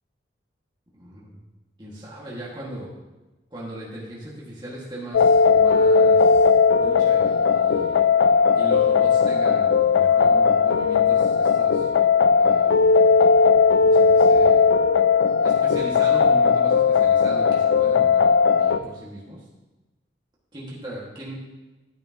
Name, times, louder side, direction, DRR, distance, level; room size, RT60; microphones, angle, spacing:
voice 1, 1.0-1.4 1.8-2.9 3.5-8.0 8.5-11.9 12.4-13.1 13.8-14.6 15.4-18.2 18.5-19.4 20.5-21.3, right 1 dB, 25° right, -6 dB, 1.9 m, -38 dB
sound 1, 5.1-18.8, left 5 dB, 85° left, 0.4 m, -17 dB
12.5 x 9.3 x 3.0 m, 1.1 s
head